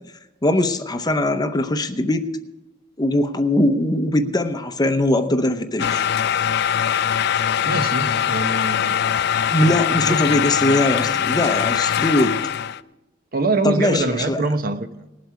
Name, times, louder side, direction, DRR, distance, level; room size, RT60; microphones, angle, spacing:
voice 1, 0.4-2.3 3.0-6.1 8.8-8.9 9.5-12.4 13.6-14.4, left 1 dB, 20° left, 8 dB, 0.7 m, -21 dB
sound 1, 5.8-12.8, left 9 dB, 60° left, 0.4 m, -22 dB
voice 2, 7.7-9.1 10.1-10.3 13.3-15.1, right 2 dB, 50° right, 9 dB, 0.9 m, -24 dB
19.5 x 8.0 x 4.7 m, 0.97 s
head